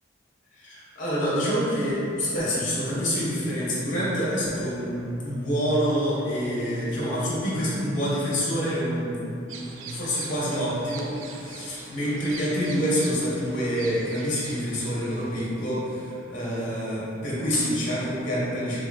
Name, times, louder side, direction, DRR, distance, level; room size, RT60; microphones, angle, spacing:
voice 1, 0.6-9.2 9.5-18.8, equal, 40° left, -8 dB, 0.8 m, -27 dB
sound 1, 9.5-15.5, right 4 dB, 80° right, 0.3 m, -43 dB
3.8 x 2.6 x 2.5 m, 2.8 s
head